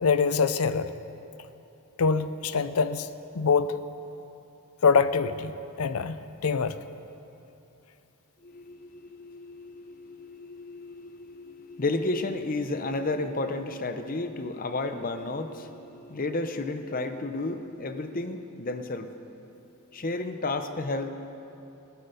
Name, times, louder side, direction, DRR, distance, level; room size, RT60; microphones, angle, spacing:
voice 1, 0.0-0.9 2.0-3.1 3.3-3.8 4.8-6.8, left 5 dB, 80° left, 13 dB, 0.6 m, -24 dB
voice 2, 8.4-19.1 19.9-21.1, left 2 dB, 40° left, 9 dB, 0.7 m, -32 dB
14.5 x 11.0 x 7.0 m, 2.9 s
head